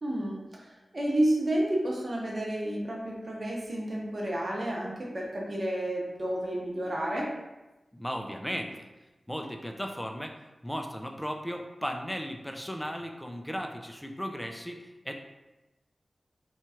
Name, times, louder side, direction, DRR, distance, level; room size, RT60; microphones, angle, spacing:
voice 1, 0.0-7.3, right 1 dB, 45° right, -3 dB, 0.9 m, -30 dB
voice 2, 7.9-8.9 9.3-15.1, equal, 5° left, 3 dB, 0.4 m, -36 dB
3.0 x 2.4 x 4.2 m, 1.0 s
cardioid pair, 55°, 0 cm